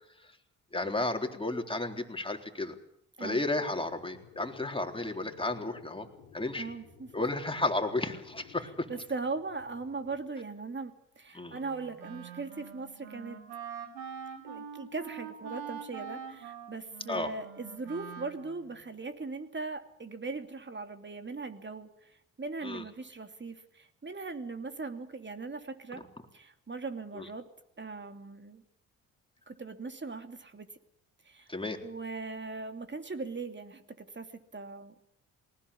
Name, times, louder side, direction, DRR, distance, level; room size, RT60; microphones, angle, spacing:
voice 1, 0.7-2.8 3.2-6.1 6.3-6.7 7.1-8.9 11.3-11.6 17.1-17.3 22.6-22.8 25.9-26.0 27.1-27.3 31.5-31.8, left 2 dB, 15° left, 4 dB, 3.9 m, -33 dB
sound 1, 3.8-10.2, left 7 dB, 85° left, 3.1 m, -56 dB
voice 2, 6.5-7.1 8.9-13.4 14.4-26.0 26.3-27.4 27.8-28.6 29.5-30.7 31.2-31.5 31.8-35.0, right 3 dB, 30° right, 7 dB, 2.8 m, -39 dB
Wind instrument woodwind instrument, 11.5-18.8, right 7 dB, 75° right, 2.8 m, -44 dB
20.0 x 19.0 x 8.6 m, 0.75 s
hypercardioid pair, 50°, 39 cm